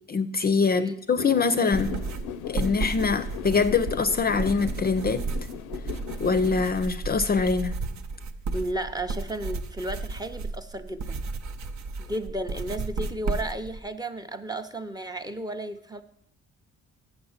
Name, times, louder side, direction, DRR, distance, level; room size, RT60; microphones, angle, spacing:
voice 1, 0.1-2.0 2.5-5.2 6.2-7.7, left 5 dB, 30° left, 11 dB, 0.5 m, -24 dB
sound 1, 1.2-6.6, left 8 dB, 90° left, 0.5 m, -38 dB
sound 2, 1.7-13.8, right 3 dB, 70° right, 0.7 m, -33 dB
voice 2, 8.5-11.2 12.0-16.0, right 1 dB, 15° right, 8 dB, 0.6 m, -33 dB
6.8 x 6.6 x 7.1 m, 0.74 s
cardioid pair, 90°, 30 cm